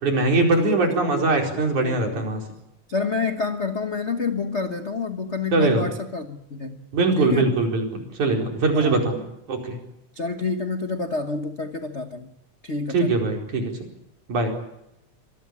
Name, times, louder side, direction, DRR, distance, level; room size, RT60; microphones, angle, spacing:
voice 1, 0.0-2.4 5.5-5.8 6.9-9.2 9.5-9.8 12.9-13.7 14.3-14.5, right 3 dB, 80° right, 2 dB, 6.0 m, -21 dB
voice 2, 0.6-2.2 2.9-6.9 7.2-7.5 8.7-9.1 10.1-12.3 12.6-13.1, left 4 dB, 65° left, 7 dB, 0.6 m, -29 dB
25.5 x 19.0 x 8.6 m, 0.85 s
omnidirectional pair, 3.4 m